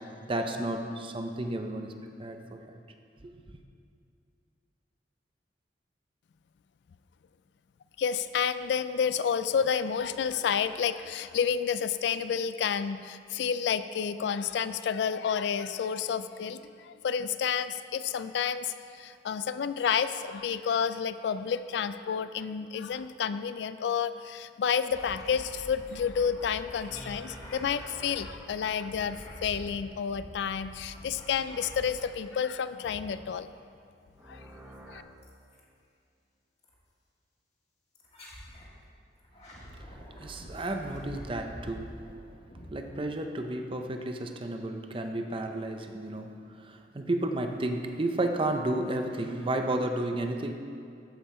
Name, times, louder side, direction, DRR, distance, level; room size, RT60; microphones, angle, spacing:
voice 1, 0.2-1.9 2.2-2.7 3.2-3.3 40.2-42.0 42.7-50.5, right 1 dB, 30° right, 5 dB, 0.6 m, -32 dB
voice 2, 8.0-33.5 34.3-34.5 34.9-35.0, left 7 dB, 70° left, 13 dB, 0.3 m, -30 dB
sound 1, 24.9-32.3 32.7-33.5 35.2-35.6 36.6-36.8 37.9-38.7 39.2-43.5, equal, 40° left, 1.6 m, -47 dB
sound 2, 26.9-29.9 34.2-35.0, equal, 10° right, 1.3 m, -49 dB
13.5 x 5.5 x 4.3 m, 2.4 s
head